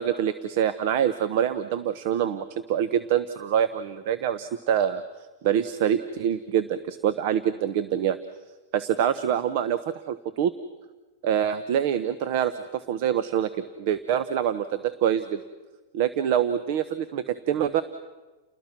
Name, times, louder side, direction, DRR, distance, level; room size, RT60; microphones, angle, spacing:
voice 1, 0.0-5.0 5.4-8.2 8.7-10.5 11.2-13.5 13.8-15.4 15.9-17.8, right 9 dB, 55° right, 13 dB, 1.0 m, -25 dB
30.0 x 20.5 x 6.0 m, 1.2 s
supercardioid pair, 145°, 0 cm